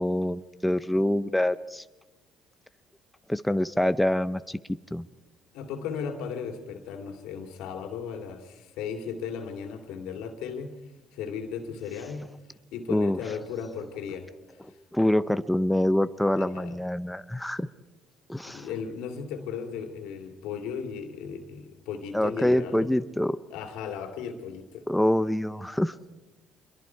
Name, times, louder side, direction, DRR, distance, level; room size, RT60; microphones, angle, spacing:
voice 1, 0.0-1.8 3.3-4.6 4.9-5.1 12.9-13.2 14.9-17.7 18.3-18.7 22.1-23.4 24.9-26.0, left 1 dB, 5° left, 12 dB, 0.7 m, -25 dB
voice 2, 5.5-10.8 11.1-12.3 12.7-14.6 16.4-16.7 18.4-22.9 23.5-24.8, left 6 dB, 85° left, 5 dB, 2.7 m, -36 dB
26.0 x 22.5 x 4.7 m, 1.1 s
supercardioid pair, 85°, 0 cm